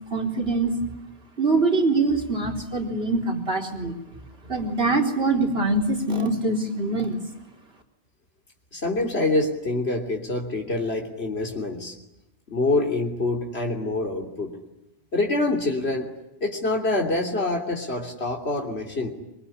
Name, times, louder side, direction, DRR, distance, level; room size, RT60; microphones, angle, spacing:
voice 1, 0.1-0.7 1.4-3.9 4.5-7.2, right 3 dB, 70° right, 2 dB, 4.3 m, -23 dB
voice 2, 8.7-12.0 12.5-14.6 15.1-16.1 16.4-19.1, left 2 dB, 80° left, 2 dB, 3.4 m, -26 dB
25.0 x 24.0 x 9.9 m, 0.91 s
omnidirectional pair, 1.1 m